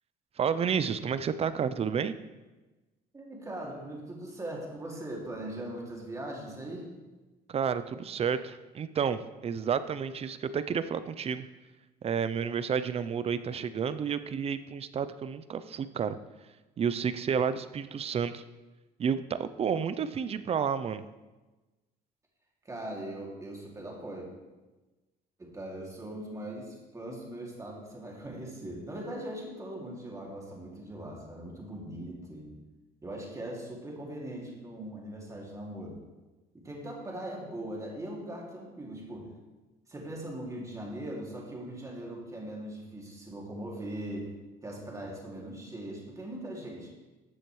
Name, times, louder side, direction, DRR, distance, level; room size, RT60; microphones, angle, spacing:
voice 1, 0.4-2.2 7.5-11.5 12.0-16.2 16.8-18.4 19.0-21.0, right 7 dB, 35° right, 13 dB, 0.5 m, -30 dB
voice 2, 3.1-6.9 22.6-24.3 25.4-32.5 33.0-36.0 36.5-39.3 39.9-44.3 44.6-46.9, right 1 dB, 20° right, -2 dB, 2.5 m, -40 dB
13.5 x 7.5 x 3.2 m, 1.2 s
cardioid pair, 110°, 17 cm